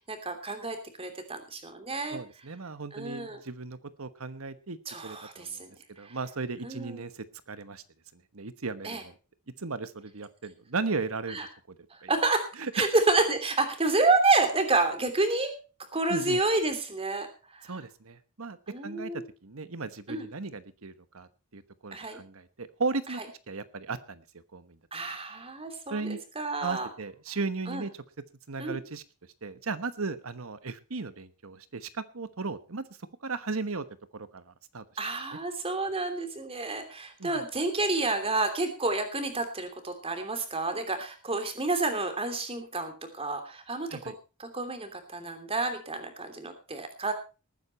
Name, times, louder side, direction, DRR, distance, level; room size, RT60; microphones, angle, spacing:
voice 1, 0.1-2.2 2.9-3.4 4.9-5.7 6.0-6.2 6.6-7.0 8.8-9.0 11.3-11.4 12.1-12.5 12.7-15.5 15.9-17.3 17.5-17.7 18.7-19.2 20.1-20.3 21.9-22.2 24.9-26.9 27.7-27.8 28.6-28.8 35.0-44.0 44.4-47.1, right 3 dB, 25° right, 7 dB, 3.0 m, -29 dB
voice 2, 2.1-4.8 5.0-5.6 6.0-7.8 8.1-9.1 9.6-11.7 12.0-12.1 12.6-12.9 16.1-16.4 17.7-18.6 18.8-23.2 23.5-24.2 24.5-24.8 25.9-26.2 26.6-27.9 28.5-29.0 29.4-32.8 33.2-33.9 34.1-34.8 37.2-37.4 43.9-44.1, right 4 dB, 75° right, 13 dB, 1.2 m, -36 dB
19.5 x 9.5 x 4.3 m, 0.33 s
head